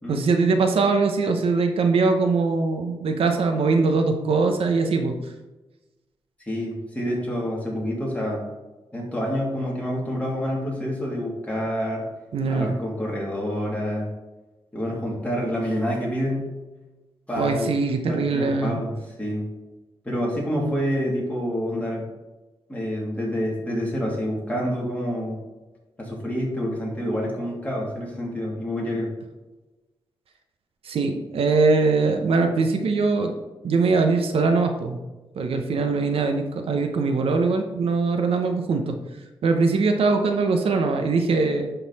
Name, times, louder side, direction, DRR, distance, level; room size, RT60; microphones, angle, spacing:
voice 1, 0.1-5.1 12.3-12.8 17.4-18.8 30.8-33.3 33.6-35.0 35.4-39.0 39.4-41.7, right 4 dB, 90° right, 5 dB, 0.8 m, -22 dB
voice 2, 6.4-8.4 8.9-12.1 12.5-14.1 14.7-16.5 17.3-17.7 18.1-19.4 20.0-22.0 22.7-25.4 26.0-29.1, equal, 15° left, -4 dB, 2.8 m, -27 dB
11.0 x 3.9 x 4.1 m, 1.1 s
wide cardioid pair, 100°, 9 cm